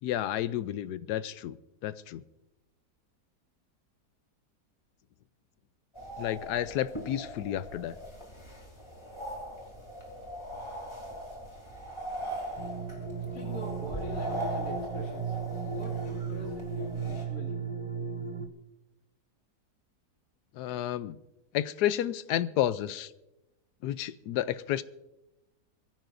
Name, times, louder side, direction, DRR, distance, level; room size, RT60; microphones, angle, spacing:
voice 1, 0.0-1.6 1.8-2.2 6.2-8.0 20.6-21.2 21.5-23.1 23.8-24.8, left 12 dB, 85° left, 15 dB, 1.2 m, -31 dB
sound 1, 6.0-17.3, equal, 15° left, 2.8 m, -40 dB
sound 2, 12.6-18.5, right 6 dB, 35° right, 0.5 m, -35 dB
voice 2, 13.3-15.4 15.6-17.6, left 2 dB, 65° left, -3 dB, 2.6 m, -43 dB
23.0 x 15.0 x 2.6 m, 0.96 s
omnidirectional pair, 1.7 m